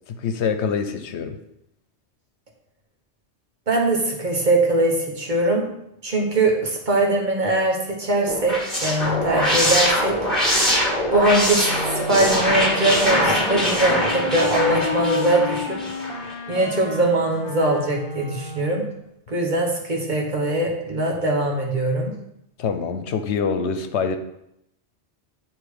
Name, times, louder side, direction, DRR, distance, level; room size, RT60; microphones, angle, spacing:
voice 1, 0.1-1.4 22.6-24.2, left 6 dB, 85° left, 8 dB, 1.0 m, -25 dB
voice 2, 3.7-5.7 6.0-10.2 11.1-15.8 16.5-18.8 19.3-22.1, right 2 dB, 45° right, 0 dB, 1.3 m, -21 dB
sound 1, 8.3-16.3, equal, ahead, 1.6 m, -23 dB
Wind instrument woodwind instrument, 11.6-19.0, left 4 dB, 60° left, 1.2 m, -31 dB
8.8 x 3.1 x 4.8 m, 0.79 s
omnidirectional pair, 1.1 m